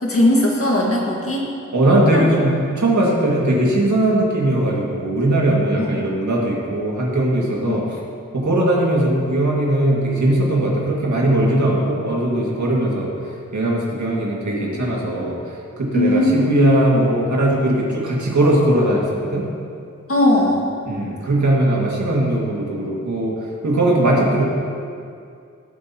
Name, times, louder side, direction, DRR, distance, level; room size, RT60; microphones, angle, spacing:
voice 1, 0.0-1.4 2.1-2.3 5.8-5.9 7.7-7.8 15.9-17.1 20.1-20.7, left 1 dB, 50° left, -2 dB, 1.9 m, -18 dB
voice 2, 1.7-8.0 8.3-13.1 13.5-15.4 15.8-19.5 20.9-23.4 23.6-24.4, right 1 dB, 70° right, -3 dB, 2.2 m, -19 dB
15.0 x 8.3 x 3.0 m, 2.4 s
cardioid pair, 50°, 30 cm